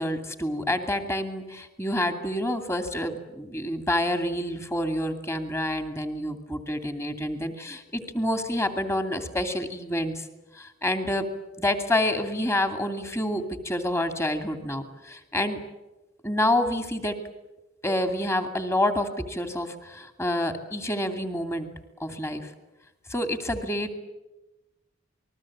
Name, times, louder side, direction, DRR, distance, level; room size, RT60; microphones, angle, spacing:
voice 1, 0.0-10.3 10.5-11.3 11.6-15.6 16.2-17.2 17.8-21.7 22.0-22.5 23.1-23.9, left 1 dB, 15° left, 7 dB, 2.6 m, -28 dB
28.0 x 21.0 x 8.7 m, 1.0 s
head